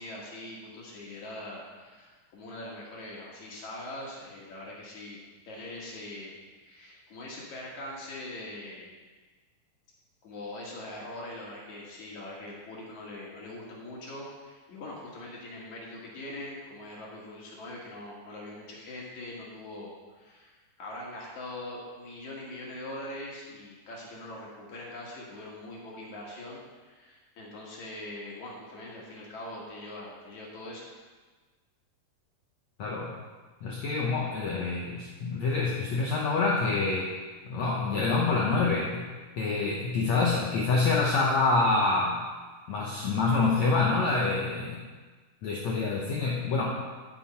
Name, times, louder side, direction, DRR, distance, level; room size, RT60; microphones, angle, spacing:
voice 1, 0.0-9.0 10.2-30.8, left 1 dB, 50° left, -4 dB, 3.0 m, -42 dB
voice 2, 32.8-33.1 33.6-37.1 37.4-39.1 39.4-42.2 42.7-44.8 45.4-46.8, left 3 dB, 75° left, -3 dB, 1.6 m, -26 dB
12.0 x 9.8 x 4.3 m, 1.4 s
omnidirectional pair, 4.9 m